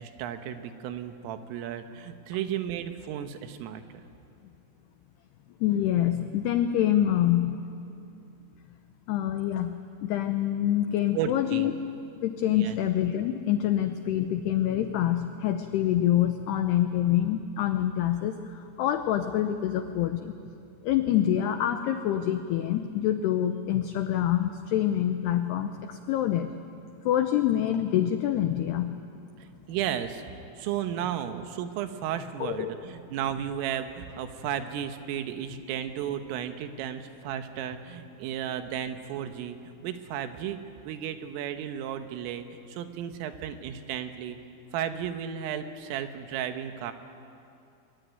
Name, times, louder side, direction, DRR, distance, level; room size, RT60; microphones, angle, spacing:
voice 1, 0.0-4.0 11.1-11.7 12.5-12.8 29.4-30.2 30.6-44.4 44.7-46.9, right 10 dB, 85° right, 8 dB, 3.8 m, -34 dB
voice 2, 5.6-7.6 9.1-11.7 12.2-20.3 20.8-26.5 27.1-29.0 32.4-32.7, left 11 dB, 90° left, 8 dB, 2.3 m, -26 dB
23.0 x 22.5 x 9.4 m, 2.6 s
omnidirectional pair, 5.8 m